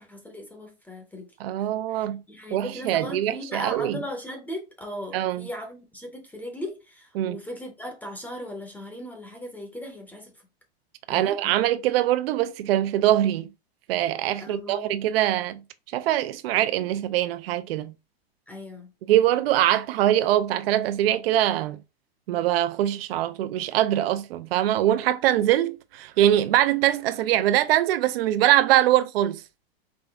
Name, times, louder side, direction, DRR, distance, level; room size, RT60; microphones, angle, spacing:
voice 1, 0.0-1.3 1.9-10.3 11.1-11.4 14.4-14.9 18.5-18.9, left 1 dB, 5° left, 0.6 m, -38 dB
voice 2, 1.4-2.2 2.5-4.0 5.1-5.5 7.2-7.4 11.1-13.5 13.9-15.6 15.9-17.9 19.1-21.8 22.3-29.4, right 13 dB, 65° right, 0.5 m, -23 dB
3.9 x 3.3 x 3.4 m
hypercardioid pair, 140°, 31 cm